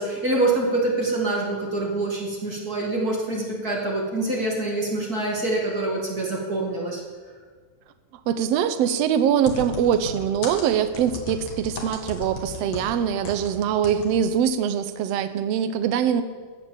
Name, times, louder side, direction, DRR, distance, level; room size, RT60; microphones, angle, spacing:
voice 1, 0.0-7.0, right 2 dB, 30° right, -2 dB, 2.1 m, -25 dB
voice 2, 8.3-16.2, right 8 dB, 80° right, 9 dB, 1.4 m, -23 dB
sound 1, 9.5-13.5 13.8-14.1 14.4-14.5, left 4 dB, 70° left, 3.4 m, -35 dB
15.0 x 8.5 x 7.2 m, 1.5 s
omnidirectional pair, 3.9 m